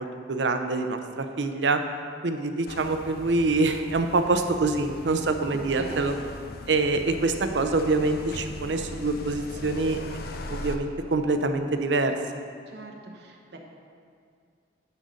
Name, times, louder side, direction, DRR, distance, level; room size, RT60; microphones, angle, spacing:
voice 1, 0.0-1.8 2.2-6.1 6.7-10.0 10.3-12.2, right 3 dB, 80° right, 7 dB, 0.6 m, -25 dB
sound 1, 2.7-10.8, left 2 dB, 55° left, 0.6 m, -39 dB
voice 2, 5.5-6.1 12.7-13.6, right 1 dB, 65° right, 1 dB, 1.1 m, -41 dB
10.0 x 4.1 x 6.3 m, 2.2 s
head